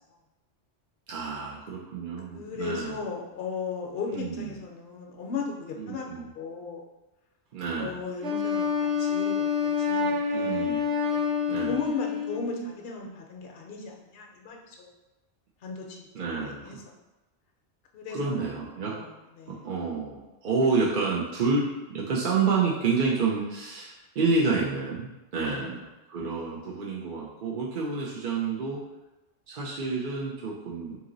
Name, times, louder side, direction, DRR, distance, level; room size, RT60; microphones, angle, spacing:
voice 1, 1.1-3.0 4.1-4.6 5.8-6.3 7.5-8.0 10.3-10.9 11.5-11.8 16.1-16.8 18.1-18.9 19.5-28.8 29.5-31.0, right 4 dB, 55° right, -5 dB, 0.7 m, -29 dB
voice 2, 2.3-6.1 6.4-6.8 7.8-10.8 11.0-14.9 15.6-16.8 17.9-18.5 18.8-19.1 19.4-19.7 25.4-25.8 26.4-26.5, left 4 dB, 65° left, 0 dB, 0.8 m, -37 dB
Wind instrument woodwind instrument, 8.2-12.5, left 6 dB, 80° right, 1.0 m, -27 dB
3.8 x 2.9 x 3.8 m, 1.1 s
omnidirectional pair, 1.1 m